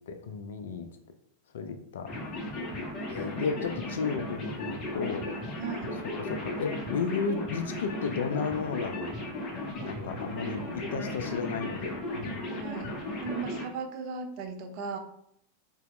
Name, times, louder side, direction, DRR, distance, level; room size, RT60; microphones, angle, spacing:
voice 1, 0.1-0.9 1.5-2.1 3.1-5.6 6.2-9.1 9.9-12.5, left 5 dB, 60° left, 6 dB, 0.3 m, -33 dB
sound 1, 2.1-13.6, left 1 dB, 30° left, 0.7 m, -36 dB
voice 2, 3.2-4.0 5.6-6.0 12.5-12.9 13.2-15.0, right 5 dB, 45° right, 5 dB, 0.4 m, -37 dB
2.8 x 2.0 x 3.0 m, 0.72 s
figure-of-eight pair, 90°, 0 cm